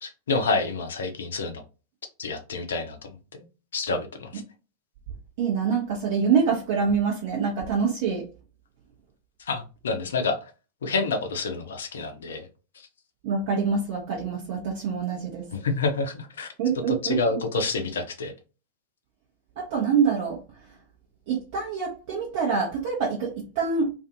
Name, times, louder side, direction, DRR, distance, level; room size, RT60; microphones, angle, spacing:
voice 1, 0.0-1.6 2.2-3.0 3.7-4.4 9.5-10.4 10.8-12.5 15.5-16.5 16.9-18.3, left 3 dB, 65° left, 6 dB, 0.5 m, -28 dB
voice 2, 5.4-8.3 13.2-15.5 16.6-17.2 19.6-20.4 21.3-23.9, right 6 dB, 50° right, -4 dB, 0.8 m, -25 dB
2.5 x 2.4 x 2.6 m, 0.33 s
figure-of-eight pair, 90°, 0 cm